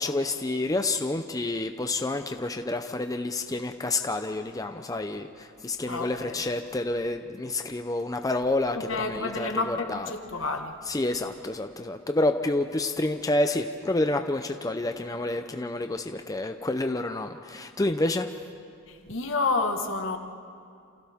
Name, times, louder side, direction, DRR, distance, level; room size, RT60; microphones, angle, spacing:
voice 1, 0.0-10.1 10.9-18.3, left 2 dB, 15° left, 6 dB, 0.6 m, -29 dB
voice 2, 5.8-6.4 8.7-10.8 18.9-20.2, left 3 dB, 65° left, 5 dB, 1.5 m, -30 dB
29.0 x 28.0 x 3.6 m, 2.4 s
head